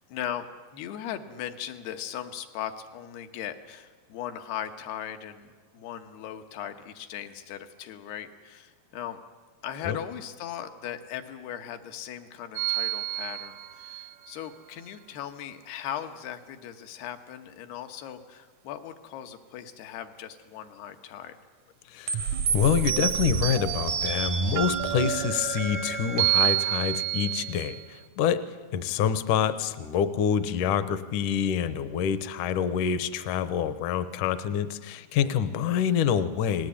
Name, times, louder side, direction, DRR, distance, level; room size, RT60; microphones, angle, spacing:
voice 1, 0.1-9.2 9.6-21.4, left 10 dB, 85° left, 7 dB, 3.3 m, -38 dB
sound 1, 12.6-14.1 22.1-27.8, right 10 dB, 75° right, 1.8 m, -28 dB
voice 2, 21.9-36.7, left 8 dB, 70° left, 12 dB, 2.2 m, -27 dB
29.5 x 19.5 x 8.6 m, 1.5 s
omnidirectional pair, 4.5 m